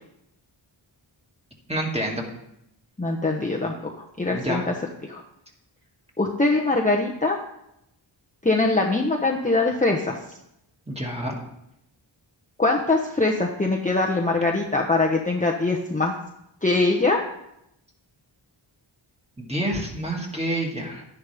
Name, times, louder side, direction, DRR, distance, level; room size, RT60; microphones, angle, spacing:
voice 1, 1.7-2.3 4.2-4.7 10.9-11.4 19.4-21.1, right 1 dB, 15° right, -1 dB, 2.4 m, -28 dB
voice 2, 3.0-4.7 5.1-5.2 6.2-7.4 8.4-10.2 12.6-16.1 16.6-17.2, left 2 dB, 15° left, -1 dB, 1.0 m, -22 dB
11.5 x 10.5 x 3.5 m, 0.82 s
wide cardioid pair, 70°, 48 cm